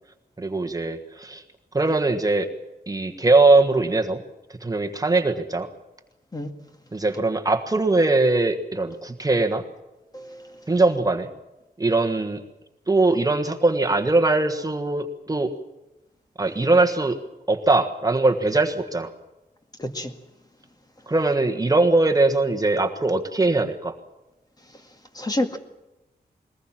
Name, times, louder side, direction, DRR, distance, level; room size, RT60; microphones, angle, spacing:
voice 1, 0.4-1.4 1.7-2.5 2.9-4.2 4.6-5.7 6.9-9.6 10.7-11.3 11.8-12.4 12.9-15.5 16.4-17.2 17.5-19.1 21.1-23.9, right 2 dB, 20° right, 1.4 m, -21 dB
voice 2, 19.8-20.1 25.2-25.6, left 1 dB, 25° left, 2.0 m, -28 dB
22.0 x 19.5 x 7.4 m
wide cardioid pair, 135°, 17 cm